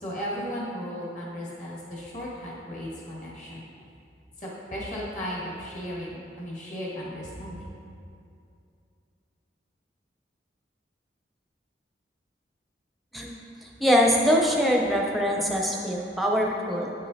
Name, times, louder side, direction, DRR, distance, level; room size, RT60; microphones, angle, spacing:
voice 1, 0.0-3.6 4.4-7.6, equal, 45° left, -6 dB, 1.7 m, -35 dB
voice 2, 13.6-16.9, equal, ahead, -1 dB, 0.6 m, -23 dB
8.6 x 6.4 x 2.7 m, 2.5 s
head